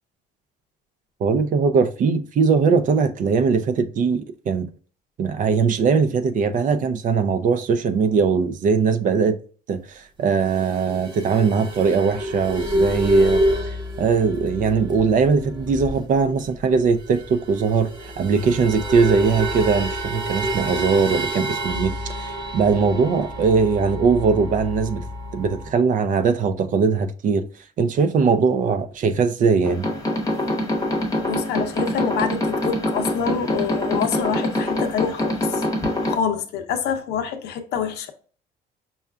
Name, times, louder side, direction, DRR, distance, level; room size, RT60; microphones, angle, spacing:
voice 1, 1.2-4.7 5.2-9.4 9.7-25.0 25.3-27.4 27.8-29.9, right 5 dB, 50° right, 0.5 m, -20 dB
sound 1, 10.4-16.2 16.5-16.6 16.8-25.7, equal, 25° right, 0.8 m, -28 dB
sound 2, 29.6-36.2, left 1 dB, 20° left, 0.8 m, -24 dB
voice 2, 31.2-35.6 36.0-38.1, left 7 dB, 75° left, 0.6 m, -26 dB
5.5 x 2.3 x 2.3 m
cardioid pair, 110°, 17 cm